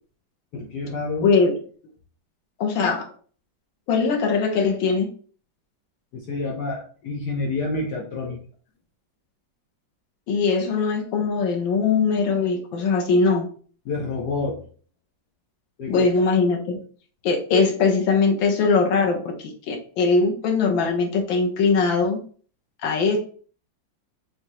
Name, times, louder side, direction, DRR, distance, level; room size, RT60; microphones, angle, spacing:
voice 1, 0.5-1.3 6.1-8.4 13.9-14.6 15.8-16.1, left 3 dB, 65° left, -1 dB, 1.5 m, -28 dB
voice 2, 1.2-1.6 2.6-3.1 3.9-5.1 10.3-13.5 15.9-16.8 17.2-22.2 22.8-23.2, left 4 dB, 90° left, 2 dB, 1.6 m, -21 dB
5.2 x 3.3 x 3.0 m, 0.43 s
omnidirectional pair, 2.0 m